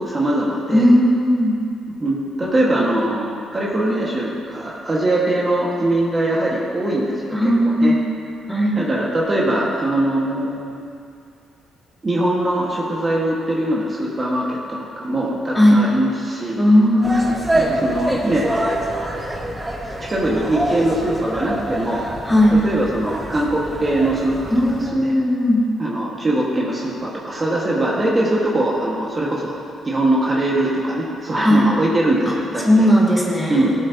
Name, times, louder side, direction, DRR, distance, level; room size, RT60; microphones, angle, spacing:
voice 1, 0.0-0.9 2.0-7.9 8.7-10.8 12.0-16.6 17.5-18.5 20.0-22.1 22.6-24.5 24.9-25.1 25.8-29.6 29.8-32.9 33.5-33.7, right 1 dB, 30° right, -4 dB, 1.7 m, -21 dB
voice 2, 0.7-1.6 7.3-8.0 8.5-8.8 15.5-15.8 16.6-17.3 22.2-22.6 24.5-25.7 31.4-31.6 32.6-33.7, equal, 5° left, -5 dB, 2.2 m, -16 dB
sound 1, 17.0-24.9, right 1 dB, 10° right, 1.4 m, -26 dB
17.0 x 8.2 x 2.9 m, 2.4 s
cardioid pair, 90°, 0 cm